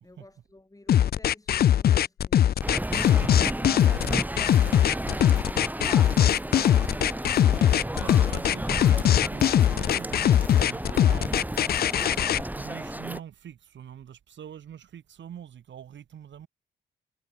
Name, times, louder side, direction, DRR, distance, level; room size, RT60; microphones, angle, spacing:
voice 1, 0.0-2.7, left 2 dB, 15° left, 6.6 m, -55 dB
sound 1, 0.9-12.4, left 10 dB, 50° left, 0.5 m, -21 dB
sound 2, 2.6-13.2, right 1 dB, 10° right, 2.8 m, -33 dB
voice 2, 7.7-11.8 12.5-16.5, right 9 dB, 70° right, 4.4 m, -45 dB
supercardioid pair, 55°, 20 cm